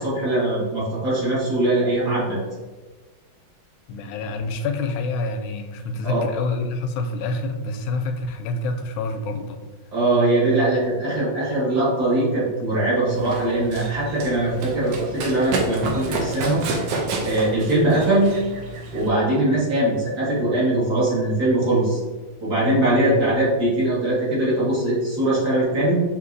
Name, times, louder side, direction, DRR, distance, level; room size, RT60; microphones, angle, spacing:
voice 1, 0.0-2.4 6.0-6.2 9.9-16.6 17.2-18.3 18.9-22.0 22.4-26.0, right 1 dB, 55° right, -8 dB, 2.2 m, -21 dB
voice 2, 3.9-9.6 23.0-23.1, left 2 dB, 80° left, 6 dB, 1.3 m, -27 dB
Run, 13.1-19.1, right 3 dB, 75° right, 1.3 m, -30 dB
6.3 x 2.9 x 2.5 m, 1.3 s
omnidirectional pair, 2.2 m